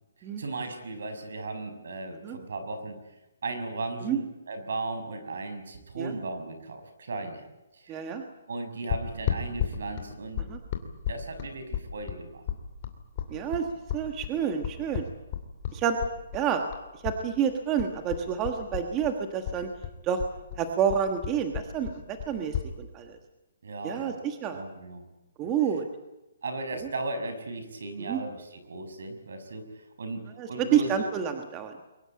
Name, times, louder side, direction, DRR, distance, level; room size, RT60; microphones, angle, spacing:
voice 1, 0.4-3.0 3.4-7.4 7.7-8.0 8.5-10.4 11.1-12.4 23.6-24.2 24.5-25.0 25.4-25.5 26.4-31.0, right 3 dB, 65° right, 8 dB, 6.0 m, -36 dB
voice 2, 7.9-8.2 10.5-10.6 13.3-13.7 13.9-15.0 15.7-16.0 16.3-16.6 17.0-19.7 20.0-20.2 20.6-23.2 23.8-24.6 25.4-25.8 26.7-26.9 28.0-28.2 30.4-31.7, right 8 dB, 15° right, 6 dB, 1.4 m, -29 dB
sound 1, 8.9-17.2 17.5-19.1 19.4-22.7, left 9 dB, 30° left, 2.6 m, -33 dB
23.0 x 21.0 x 8.6 m, 0.99 s
hypercardioid pair, 175°, 0 cm